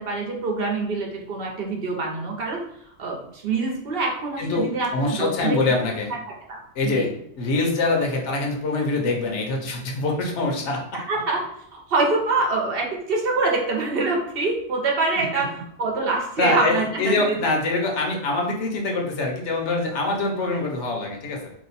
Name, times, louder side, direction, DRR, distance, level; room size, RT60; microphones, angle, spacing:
voice 1, 0.0-2.6 3.0-5.6 6.1-6.2 6.5-6.6 6.9-7.1 10.9-11.4 11.7-15.5 15.8-17.4, right 3 dB, 60° right, -1 dB, 0.9 m, -25 dB
voice 2, 4.9-6.1 6.7-7.1 7.4-11.2 15.2-15.4 16.4-21.5, left 2 dB, 85° left, 1 dB, 1.1 m, -24 dB
2.9 x 2.1 x 4.0 m, 0.72 s
omnidirectional pair, 1.2 m